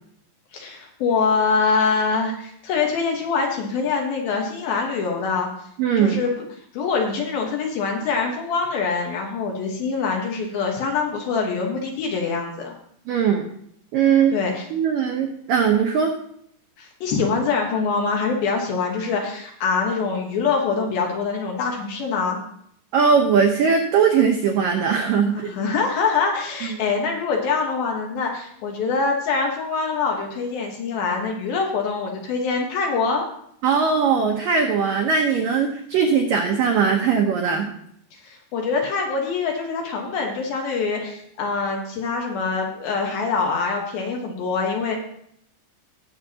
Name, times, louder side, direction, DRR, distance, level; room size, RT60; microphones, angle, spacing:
voice 1, 0.5-5.5 6.0-6.4 6.7-12.7 14.3-14.7 16.8-22.4 25.3-33.2 38.1-45.0, left 4 dB, 65° left, 1 dB, 2.7 m, -24 dB
voice 2, 5.8-6.2 13.1-13.5 13.9-14.3 14.7-16.1 22.9-25.5 26.6-26.8 33.6-37.7, right 6 dB, 90° right, 2 dB, 1.9 m, -20 dB
19.0 x 7.1 x 2.8 m, 0.70 s
omnidirectional pair, 5.3 m